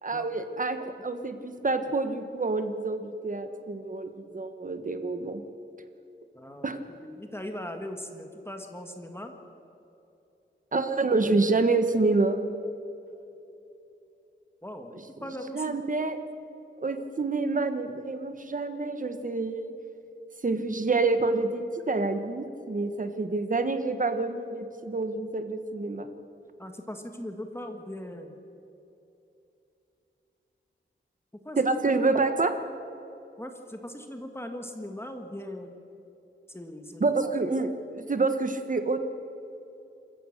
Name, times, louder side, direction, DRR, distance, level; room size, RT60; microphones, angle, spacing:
voice 1, 0.0-5.4 6.6-6.8 10.7-12.4 15.5-16.2 16.8-19.7 20.4-26.1 31.6-32.5 37.0-39.0, right 3 dB, 40° right, 8 dB, 1.3 m, -27 dB
voice 2, 6.3-9.3 14.6-14.9 15.2-15.7 26.6-28.4 31.4-31.6 33.4-35.7 36.5-37.2, left 1 dB, 10° left, 5 dB, 1.7 m, -39 dB
26.5 x 15.0 x 6.7 m, 2.9 s
wide cardioid pair, 115°, 20 cm